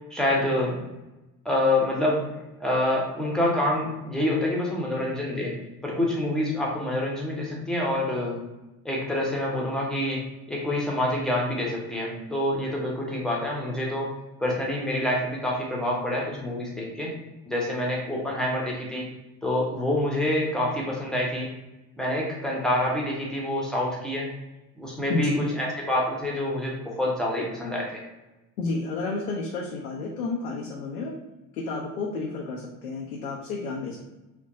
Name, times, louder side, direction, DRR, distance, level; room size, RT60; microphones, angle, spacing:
voice 1, 0.1-0.8 1.4-2.3 2.6-5.6 5.8-8.4 8.8-14.1 14.4-17.2 17.5-19.0 19.4-21.5 22.0-24.3 24.8-28.0, left 1 dB, ahead, -3 dB, 0.9 m, -27 dB
voice 2, 25.1-25.4 28.6-31.1 31.6-34.1, left 3 dB, 75° left, -3 dB, 0.6 m, -31 dB
3.2 x 2.5 x 2.6 m, 1.0 s
figure-of-eight pair, 55°, 44 cm